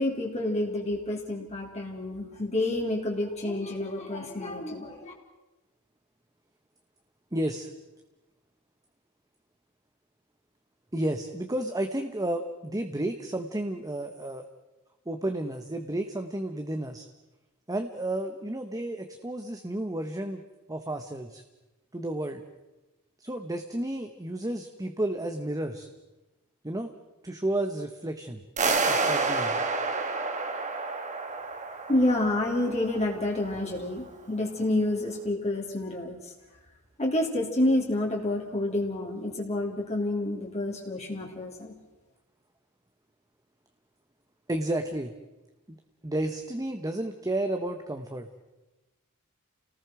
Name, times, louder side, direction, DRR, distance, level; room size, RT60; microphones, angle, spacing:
voice 1, 0.0-5.1 31.9-36.2 37.0-41.7, left 1 dB, 30° left, -1 dB, 3.1 m, -29 dB
voice 2, 7.3-7.7 10.9-14.4 15.1-17.0 17.7-20.4 20.7-21.4 21.9-22.4 23.2-25.9 26.6-26.9 27.2-28.4 28.9-29.6 44.5-45.1 45.7-45.8 46.0-48.3, right 1 dB, 15° right, 6 dB, 1.1 m, -32 dB
sound 1, 28.6-33.5, right 3 dB, 35° right, 1.9 m, -29 dB
29.5 x 19.0 x 6.2 m, 1.1 s
head